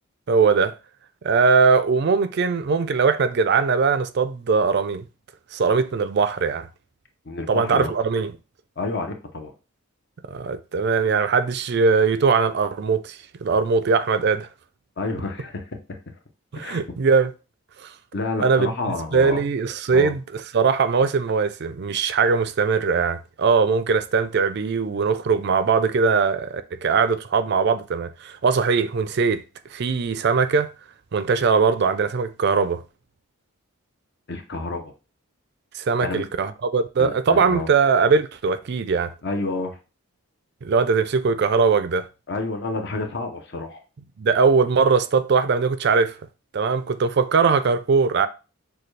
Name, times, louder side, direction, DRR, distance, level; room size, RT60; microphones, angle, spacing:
voice 1, 0.3-0.7 1.2-5.0 5.5-6.7 7.5-8.3 10.3-14.5 16.5-17.3 17.8-17.9 18.4-18.7 19.1-20.2 20.5-29.4 29.7-30.7 31.1-32.8 35.7-39.1 40.6-42.1 44.2-46.1 46.5-48.3, right 5 dB, 50° right, 0.4 m, -20 dB
voice 2, 7.3-7.9 8.8-9.5 15.0-15.6 16.5-16.8 18.1-19.4 19.9-20.1 34.3-34.9 36.0-36.3 37.0-37.7 39.2-39.8 42.3-43.8, left 3 dB, 50° left, 0.7 m, -29 dB
6.6 x 2.3 x 3.2 m
head